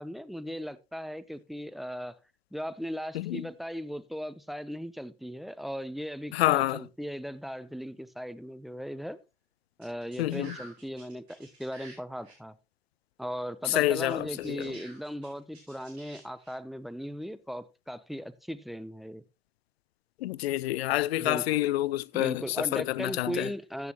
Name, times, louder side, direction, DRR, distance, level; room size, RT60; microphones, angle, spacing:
voice 1, 0.0-2.2 2.5-9.2 9.8-12.5 13.2-19.2 21.2-21.4 22.1-23.9, equal, ahead, 0.8 m, -37 dB
voice 2, 3.1-3.4 6.3-6.8 10.2-10.6 13.7-14.7 20.2-22.4 22.7-23.5, left 16 dB, 75° left, 0.5 m, -28 dB
sound 1, 9.8-12.0 12.2-12.3 14.1-16.5, right 2 dB, 85° right, 5.2 m, -50 dB
14.0 x 8.6 x 3.0 m
figure-of-eight pair, 60°, 32 cm